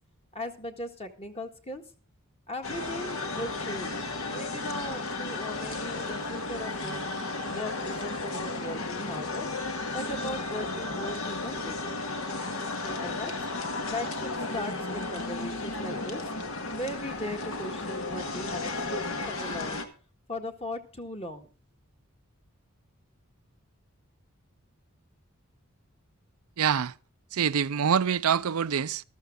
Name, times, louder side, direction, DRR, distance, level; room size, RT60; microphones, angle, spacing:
voice 1, 0.3-1.8 2.5-7.1 7.5-9.5 9.9-11.8 12.8-13.3 13.8-16.2 16.7-19.9 20.3-21.5, left 1 dB, 25° left, 1.6 m, -38 dB
sound 1, 2.6-19.8, left 2 dB, 70° left, 1.8 m, -34 dB
voice 2, 26.6-26.9 27.3-29.0, right 7 dB, 85° right, 0.5 m, -25 dB
14.0 x 13.5 x 3.8 m
head